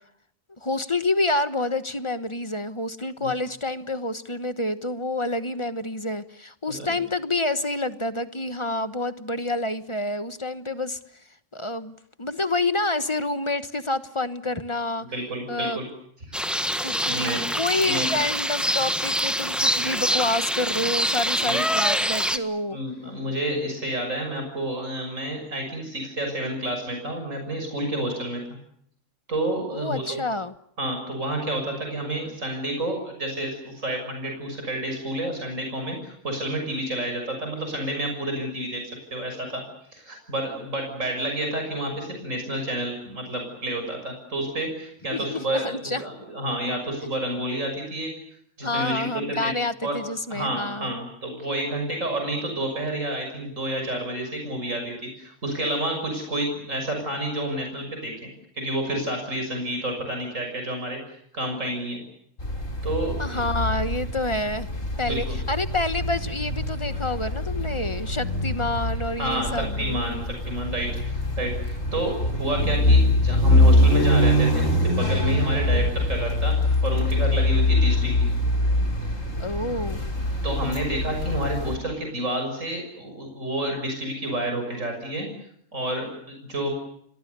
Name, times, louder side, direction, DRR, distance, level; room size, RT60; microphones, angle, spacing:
voice 1, 0.6-11.0 11.5-11.9 12.2-15.1 15.5-15.8 16.8-22.8 29.7-30.5 45.1-46.0 47.0-47.1 48.6-50.9 63.2-64.7 65.0-70.0 79.4-80.0, left 2 dB, 25° left, 11 dB, 1.2 m, -28 dB
voice 2, 6.7-7.0 15.1-15.9 17.1-17.4 17.8-18.1 21.4-21.6 22.7-28.4 29.3-30.2 30.8-38.8 39.1-39.6 39.9-48.1 48.6-49.0 49.4-49.5 49.8-50.0 50.3-58.3 58.5-61.0 61.3-62.0 62.8-63.4 65.0-65.4 69.2-78.3 80.4-85.3 85.7-86.7, right 1 dB, 75° right, 3 dB, 6.8 m, -29 dB
sound 1, 16.3-22.4, equal, ahead, 1.5 m, -25 dB
sound 2, 62.4-81.8, left 1 dB, 75° left, 4.8 m, -23 dB
29.5 x 23.5 x 6.9 m, 0.71 s
omnidirectional pair, 1.3 m